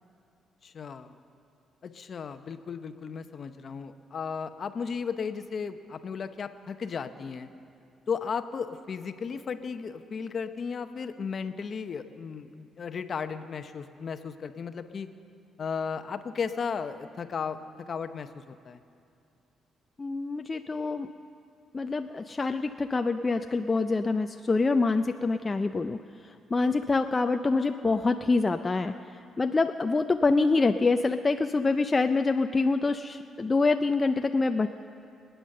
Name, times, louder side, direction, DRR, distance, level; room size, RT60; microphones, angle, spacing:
voice 1, 0.6-1.2 1.8-7.5 8.1-15.1 15.6-18.8, left 6 dB, 50° left, 9 dB, 0.8 m, -35 dB
voice 2, 20.0-21.1 21.7-26.0 26.5-28.9 29.4-34.7, left 3 dB, 25° left, 7 dB, 0.4 m, -26 dB
22.5 x 9.4 x 6.6 m, 2.5 s
cardioid pair, 90°, 0 cm